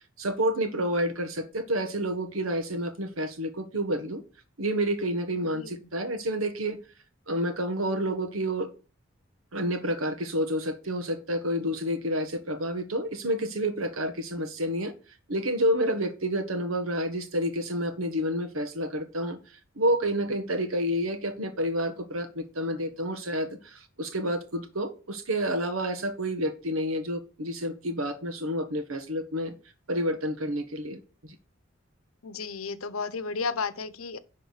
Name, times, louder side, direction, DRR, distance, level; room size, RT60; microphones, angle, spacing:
voice 1, 0.2-4.2 4.6-6.8 7.3-8.7 9.5-14.9 15.3-19.4 19.7-29.5 29.9-31.3, equal, 80° right, 1.5 m, -29 dB
voice 2, 5.4-5.8 32.2-34.2, left 4 dB, 90° left, 0.8 m, -33 dB
10.5 x 3.8 x 6.4 m
head